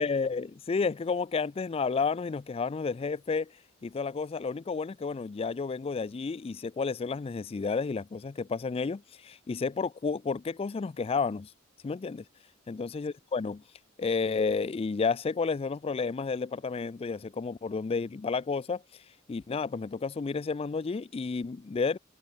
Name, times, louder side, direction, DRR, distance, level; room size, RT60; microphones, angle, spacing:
voice 1, 0.0-3.5 3.8-11.5 11.8-12.2 12.7-13.6 14.0-18.8 19.3-22.0, left 4 dB, 30° left, 0.3 m, -31 dB
head